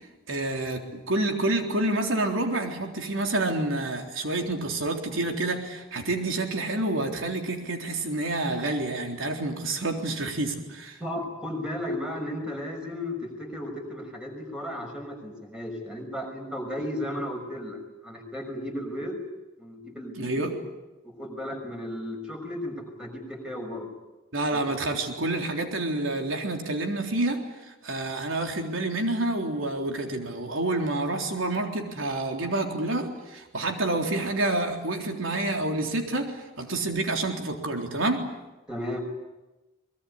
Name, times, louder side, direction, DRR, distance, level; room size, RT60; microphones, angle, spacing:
voice 1, 0.3-11.0 20.2-20.5 24.3-27.4 27.7-38.3, right 2 dB, 85° right, 3 dB, 3.8 m, -28 dB
voice 2, 11.0-17.8 18.0-19.2 19.6-20.5 21.0-23.9 24.5-24.6 38.7-39.0, left 1 dB, 5° right, 2 dB, 6.0 m, -34 dB
23.5 x 21.5 x 9.8 m, 1.0 s
head